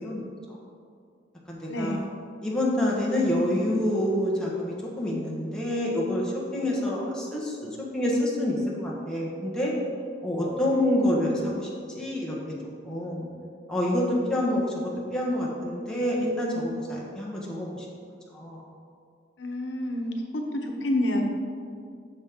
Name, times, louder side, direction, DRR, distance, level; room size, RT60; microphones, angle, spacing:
voice 1, 0.0-0.6 1.5-2.0 2.4-9.7 10.2-11.7 11.9-12.4 12.8-13.3 13.7-17.9 18.3-18.6, left 1 dB, 5° left, -5 dB, 1.4 m, -27 dB
voice 2, 1.7-2.0 19.4-21.2, left 1 dB, 80° left, 2 dB, 1.0 m, -28 dB
10.5 x 6.6 x 3.7 m, 2.3 s
head